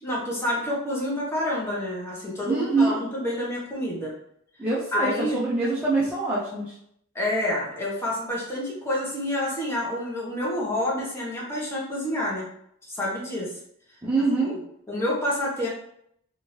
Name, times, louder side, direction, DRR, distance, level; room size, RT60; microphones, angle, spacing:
voice 1, 0.0-4.1 4.9-5.4 7.1-12.5 12.8-13.5 14.4-14.6 14.9-15.7, left 1 dB, 10° left, -5 dB, 0.9 m, -28 dB
voice 2, 2.5-3.0 4.6-6.7 14.0-14.5, right 3 dB, 5° right, -8 dB, 0.5 m, -24 dB
2.9 x 2.6 x 3.0 m, 0.72 s
head